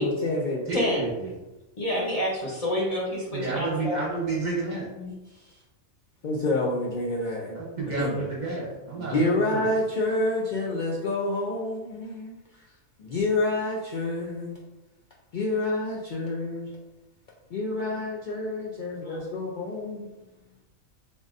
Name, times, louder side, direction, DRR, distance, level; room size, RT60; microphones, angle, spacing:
voice 1, 0.0-0.8 6.2-7.6 8.0-8.6 9.0-12.4 13.0-14.6 15.3-16.7 17.5-20.1, left 2 dB, 80° left, -3 dB, 0.4 m, -28 dB
voice 2, 0.7-1.3 3.3-4.9 7.5-9.6, right 3 dB, 40° right, -4 dB, 0.8 m, -30 dB
voice 3, 1.8-4.0 5.0-5.1, left 1 dB, 30° left, -5 dB, 0.8 m, -28 dB
3.6 x 3.6 x 2.5 m, 1.0 s
omnidirectional pair, 1.4 m